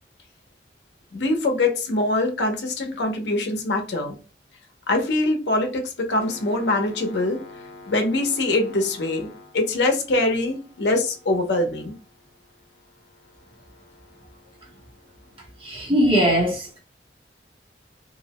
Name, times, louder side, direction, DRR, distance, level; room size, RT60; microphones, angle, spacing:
voice 1, 1.1-4.2 4.9-11.9, left 2 dB, 80° left, 0.6 m, -23 dB
voice 2, 15.6-16.8, equal, 30° right, 0.8 m, -20 dB
2.5 x 2.0 x 2.8 m
head